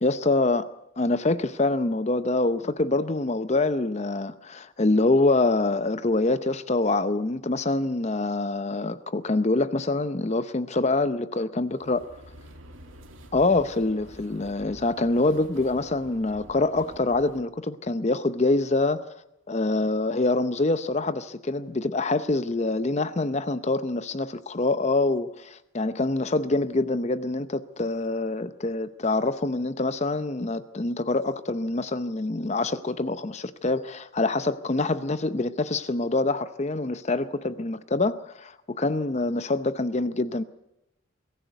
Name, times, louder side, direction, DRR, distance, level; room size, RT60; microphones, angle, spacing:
voice 1, 0.0-0.7 1.0-12.1 13.3-19.0 19.5-40.4, left 2 dB, 35° left, 13 dB, 0.6 m, -25 dB
sound 1, 11.6-17.4, right 1 dB, 75° right, 2.4 m, -48 dB
22.5 x 14.5 x 8.1 m, 0.88 s
head